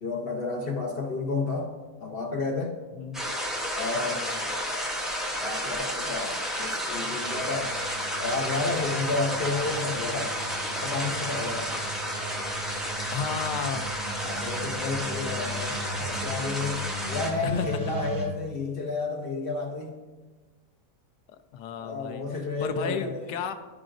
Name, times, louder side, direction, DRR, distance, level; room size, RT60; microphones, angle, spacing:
voice 1, 0.0-1.7 2.0-2.8 3.8-4.2 5.4-7.7 8.2-10.4 10.8-11.7 14.2-19.9 21.7-23.3, left 3 dB, 55° left, 2 dB, 0.6 m, -31 dB
voice 2, 3.0-3.3 3.9-4.5 13.1-13.9 17.4-17.7 21.5-22.2 22.6-23.5, left 7 dB, 80° left, 7 dB, 1.2 m, -33 dB
sound 1, 3.1-17.3, equal, ahead, 0.6 m, -31 dB
sound 2, 7.2-18.2, right 1 dB, 25° right, 2.4 m, -39 dB
12.0 x 4.9 x 2.5 m, 1.3 s
omnidirectional pair, 1.7 m